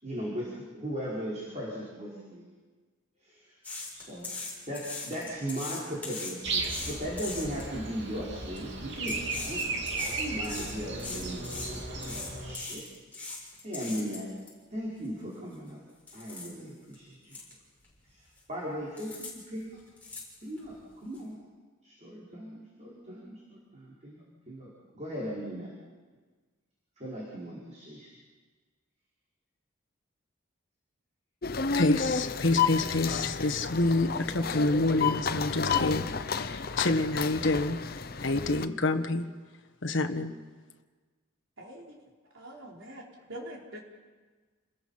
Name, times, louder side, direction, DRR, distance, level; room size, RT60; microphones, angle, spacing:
voice 1, 0.0-2.5 3.2-3.6 3.9-4.3 4.7-12.8 13.6-14.3 14.7-15.8 16.1-17.4 18.1-18.2 18.5-19.8 20.4-21.4 21.8-25.7 27.0-28.1, equal, 35° right, -6 dB, 5.1 m, -38 dB
sound 1, 3.6-7.7 8.3-8.6 9.0-14.5 15.0-15.1 15.5-15.7 16.1-16.5 16.9-17.0 17.3-17.5 17.8-18.4 19.0-19.3 19.6-20.7 21.1-21.2, left 3 dB, 10° left, 6.7 m, -40 dB
Breathing, 6.4-12.5, right 3 dB, 60° right, 2.8 m, -35 dB
sound 2, 31.4-38.7, left 5 dB, 50° left, 0.8 m, -31 dB
voice 2, 31.7-37.8 38.2-39.3 39.8-40.3, left 2 dB, 70° left, 7 dB, 1.4 m, -28 dB
voice 3, 41.6-42.0 42.3-43.0 43.3-43.8, right 1 dB, 75° right, -1 dB, 4.6 m, -43 dB
29.0 x 20.5 x 5.8 m, 1.4 s
head